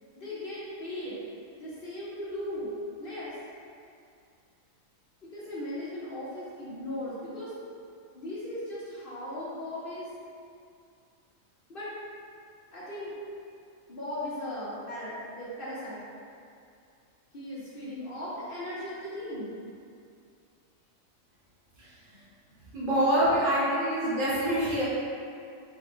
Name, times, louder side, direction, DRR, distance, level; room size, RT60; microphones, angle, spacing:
voice 1, 0.2-1.2 1.6-2.7 3.0-3.3 5.3-7.5 8.1-10.1 11.7-11.9 12.7-13.1 13.9-16.0 17.3-19.5, left 1 dB, 50° left, -9 dB, 0.9 m, -37 dB
voice 2, 21.8-22.2 22.7-24.8, equal, 65° right, -9 dB, 1.6 m, -26 dB
4.3 x 2.2 x 4.2 m, 2.4 s
omnidirectional pair, 1.4 m